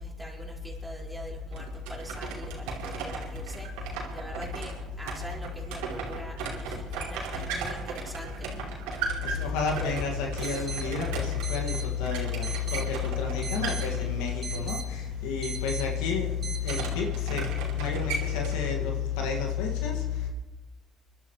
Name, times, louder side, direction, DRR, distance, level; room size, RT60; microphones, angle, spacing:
voice 1, 0.0-8.5 9.3-10.0 10.5-10.7, equal, 5° right, 4.6 m, -40 dB
sound 1, 1.5-14.5 16.6-18.8, right 4 dB, 85° right, 2.9 m, -37 dB
voice 2, 9.2-16.4 16.6-17.4 17.7-20.0, left 6 dB, 85° left, 1.9 m, -29 dB
sound 2, 10.1-16.8, right 5 dB, 40° right, 2.6 m, -41 dB
26.5 x 12.0 x 3.1 m
hypercardioid pair, 65°, 0 cm